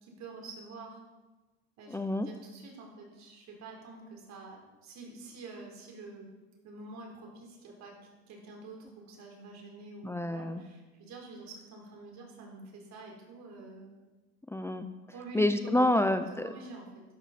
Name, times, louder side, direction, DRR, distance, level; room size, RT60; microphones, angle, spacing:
voice 1, 0.0-1.0 1.8-2.0 2.2-6.3 6.6-7.9 8.3-14.0 15.1-15.7 16.4-17.0, right 3 dB, 65° right, 0 dB, 4.1 m, -47 dB
voice 2, 1.9-2.3 10.0-10.6 14.5-14.9 15.3-16.5, left 1 dB, 10° left, 9 dB, 0.7 m, -28 dB
13.0 x 11.5 x 4.3 m, 1.2 s
supercardioid pair, 85°, 30 cm